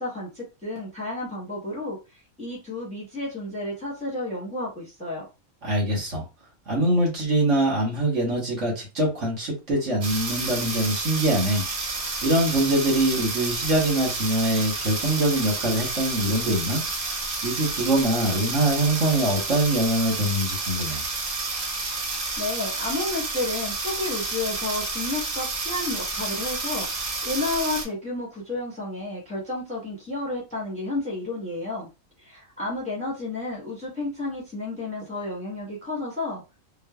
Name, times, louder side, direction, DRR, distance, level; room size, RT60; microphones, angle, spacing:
voice 1, 0.0-5.3 22.1-31.9 32.2-36.4, left 2 dB, 5° left, -4 dB, 0.9 m, -31 dB
voice 2, 5.6-6.2 6.7-16.8 17.1-17.2 17.4-21.0, right 1 dB, 70° right, -3 dB, 1.6 m, -24 dB
sound 1, 10.0-27.8, right 3 dB, 45° right, 0.6 m, -30 dB
3.2 x 2.1 x 2.2 m, 0.28 s
omnidirectional pair, 1.3 m